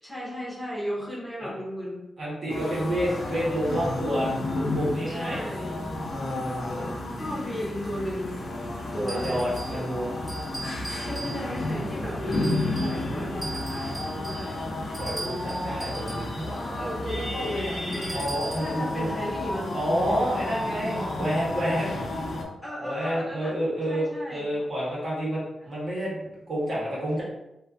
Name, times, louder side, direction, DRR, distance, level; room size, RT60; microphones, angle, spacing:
voice 1, 0.0-2.0 5.1-5.9 6.7-6.9 7.2-8.4 8.9-9.8 11.0-14.6 16.8-19.7 22.6-23.6 23.9-24.5, equal, 5° left, -6 dB, 0.7 m, -35 dB
voice 2, 2.2-5.4 6.1-6.8 9.0-10.1 15.0-16.9 18.1-19.1 19.7-22.2 22.8-27.2, equal, 50° right, -7 dB, 1.2 m, -29 dB
sound 1, 2.5-22.4, left 2 dB, 70° left, 0.5 m, -32 dB
sound 2, 9.1-9.8 10.3-11.7 12.3-13.0 13.4-16.3 17.9-18.8, right 2 dB, 30° right, 0.9 m, -39 dB
2.5 x 2.5 x 2.4 m, 0.92 s
wide cardioid pair, 125°, 0 cm